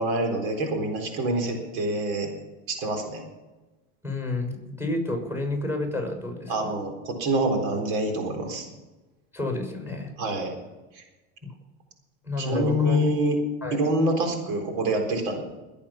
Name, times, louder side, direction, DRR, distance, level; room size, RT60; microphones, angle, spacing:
voice 1, 0.0-2.3 2.7-3.2 6.5-8.7 10.2-10.5 11.0-11.1 12.4-13.4 13.7-15.4, right 1 dB, 75° right, 4 dB, 4.0 m, -26 dB
voice 2, 4.0-6.7 9.3-10.1 12.2-13.0 13.6-13.8, left 2 dB, 5° right, 3 dB, 6.6 m, -30 dB
21.5 x 8.6 x 5.8 m, 1.1 s
supercardioid pair, 90°, 37 cm